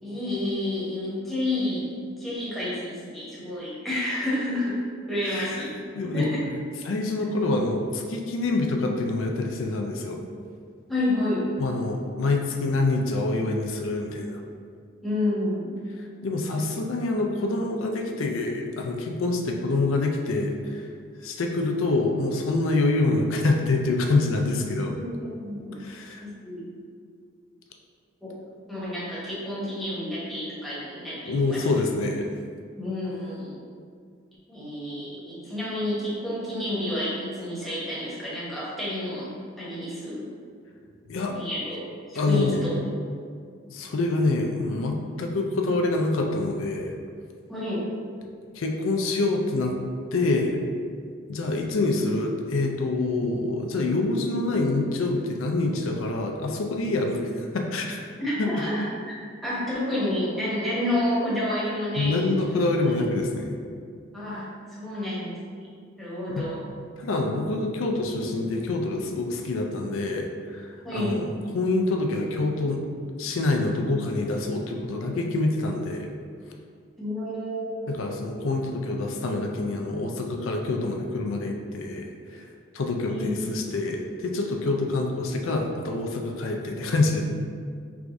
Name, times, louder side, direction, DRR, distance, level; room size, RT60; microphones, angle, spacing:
voice 1, 0.0-4.8 5.1-5.8 6.1-6.4 10.9-11.5 15.0-15.7 24.9-25.8 26.2-26.7 28.2-28.3 28.7-31.6 32.8-33.6 34.5-40.3 41.3-41.8 42.1-42.7 47.5-47.9 58.2-58.9 59.4-62.6 62.9-63.0 64.1-64.4 64.7-65.6 66.0-66.6 70.8-71.2 77.0-78.1 82.9-83.3, left 1 dB, ahead, -9 dB, 1.1 m, -30 dB
voice 2, 5.2-5.6 5.9-6.3 6.8-10.2 11.6-14.4 16.2-20.9 21.2-25.0 25.8-26.2 31.3-32.3 41.1-41.4 42.2-42.6 43.7-46.9 48.6-49.7 50.1-50.6 51.3-58.1 58.4-58.5 62.0-63.6 66.3-66.5 67.0-71.3 71.5-72.8 73.2-76.1 77.9-82.5 82.7-87.2, left 2 dB, 75° left, 2 dB, 0.5 m, -26 dB
4.7 x 3.5 x 2.6 m, 2.1 s
head